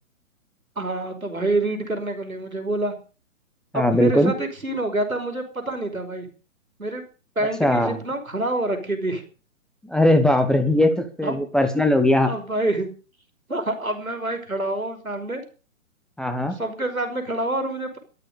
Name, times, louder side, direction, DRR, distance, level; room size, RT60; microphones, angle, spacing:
voice 1, 0.8-2.9 3.7-6.3 6.8-7.0 7.4-9.2 11.2-11.4 12.3-12.9 13.5-15.4 16.5-18.0, right 2 dB, 90° right, 6 dB, 5.5 m, -27 dB
voice 2, 3.7-4.3 7.6-8.0 9.8-10.9 11.2-12.3 16.2-16.6, left 1 dB, ahead, 7 dB, 1.2 m, -19 dB
13.5 x 13.0 x 6.9 m, 0.37 s
figure-of-eight pair, 130°, 41 cm